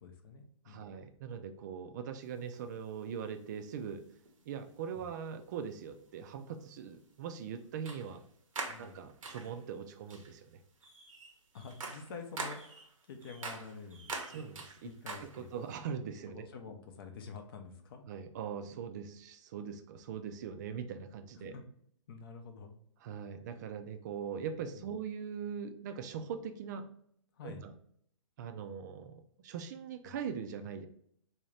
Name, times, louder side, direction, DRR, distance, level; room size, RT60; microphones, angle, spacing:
voice 1, 0.0-0.9 4.9-5.1 8.7-9.0 11.5-12.6 13.1-14.1 14.8-15.5 16.3-18.1 21.4-21.6 22.1-22.8 24.8-24.9 27.4-27.6 30.1-30.2, left 5 dB, 45° left, 5 dB, 0.6 m, -48 dB
voice 2, 0.7-4.0 4.5-8.2 8.8-10.6 14.3-14.9 15.2-16.5 18.1-21.5 23.0-26.9 27.4-27.7 28.4-30.9, right 7 dB, 35° right, 8 dB, 0.4 m, -41 dB
sound 1, 2.5-2.6 4.2-4.4 5.4-5.5 7.8-8.2 8.5-9.6 10.1-10.4 10.8-15.7, right 3 dB, 80° right, 0.9 m, -44 dB
3.7 x 2.8 x 3.2 m, 0.65 s
hypercardioid pair, 150°, 17 cm